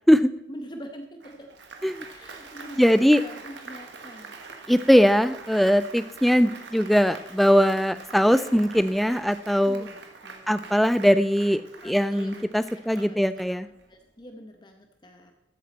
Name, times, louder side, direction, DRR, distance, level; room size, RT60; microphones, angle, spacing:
voice 1, 0.5-1.5 2.1-4.4 9.6-10.7 11.8-12.4 12.8-13.2 13.9-15.3, equal, 25° left, 5 dB, 0.9 m, -43 dB
Applause, 1.2-13.9, right 4 dB, 80° right, 1.6 m, -44 dB
voice 2, 2.8-3.2 4.7-9.9 10.5-13.7, equal, ahead, 13 dB, 0.3 m, -20 dB
13.5 x 8.7 x 4.1 m, 0.84 s
head